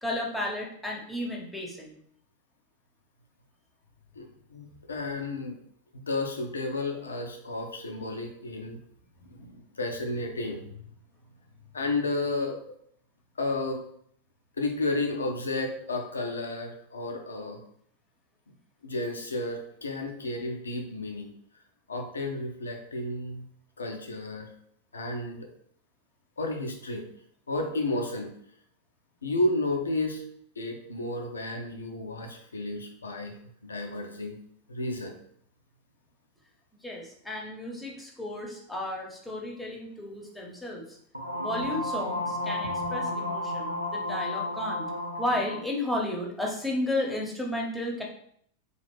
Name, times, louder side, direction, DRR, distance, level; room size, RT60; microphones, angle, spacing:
voice 1, 0.0-2.0 36.8-41.0 41.4-44.9 45.2-48.0, left 1 dB, 5° left, -2 dB, 1.0 m, -33 dB
voice 2, 4.2-5.5 5.9-8.8 9.3-10.7 11.7-12.6 13.4-13.8 14.6-17.6 18.8-21.3 21.9-23.4 23.8-24.5 24.9-25.5 26.4-27.0 27.5-28.3 29.2-30.2 30.6-33.4 33.6-34.4 34.7-35.2, left 2 dB, 75° left, 3 dB, 0.7 m, -32 dB
sound 1, 41.1-45.7, left 1 dB, 85° right, 0.5 m, -32 dB
4.1 x 2.8 x 3.4 m, 0.65 s
figure-of-eight pair, 90°, 0 cm